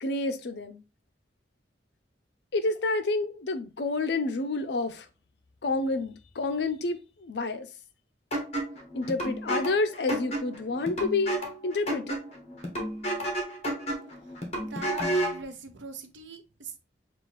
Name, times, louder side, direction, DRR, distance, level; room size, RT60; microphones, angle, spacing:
voice 1, 0.0-0.8 2.5-5.1 5.6-7.7 8.9-11.3 11.6-12.2, left 3 dB, 65° left, 0.5 m, -29 dB
sound 1, 8.3-15.4, right 1 dB, 35° left, 1.1 m, -32 dB
voice 2, 14.6-16.8, right 4 dB, 85° right, 0.8 m, -42 dB
6.1 x 2.4 x 3.1 m
head